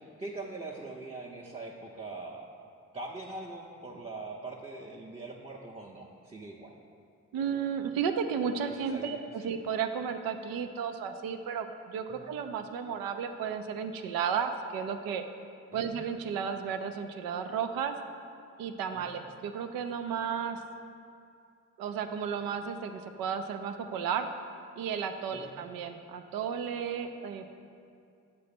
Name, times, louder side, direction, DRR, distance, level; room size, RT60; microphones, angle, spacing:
voice 1, 0.0-2.5 2.9-6.7 8.7-9.5 12.1-12.3 15.7-16.0 18.9-19.1 25.3-25.5, right 2 dB, 15° right, -2 dB, 0.7 m, -42 dB
voice 2, 7.3-15.2 15.7-17.9 18.6-20.6 21.8-24.3 24.8-27.5, right 7 dB, 85° right, 7 dB, 0.5 m, -33 dB
7.5 x 3.2 x 5.9 m, 2.4 s
supercardioid pair, 50°, 34 cm